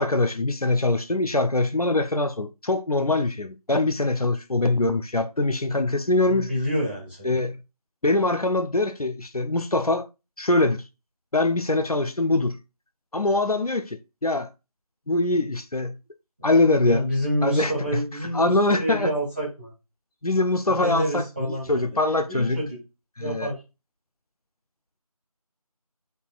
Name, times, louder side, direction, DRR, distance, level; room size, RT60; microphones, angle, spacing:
voice 1, 0.0-6.5 7.2-7.6 8.0-10.1 10.4-10.8 11.3-12.6 13.1-14.5 15.1-15.9 16.4-17.0 17.4-18.0 18.3-19.1 20.2-21.2 21.7-22.6 23.2-23.5, left 2 dB, 75° left, 0.9 m, -23 dB
voice 2, 6.3-7.4 16.4-16.5 16.8-19.7 20.6-22.8 23.2-23.6, equal, 15° right, 2.6 m, -28 dB
9.8 x 4.1 x 2.5 m
figure-of-eight pair, 175°, 19 cm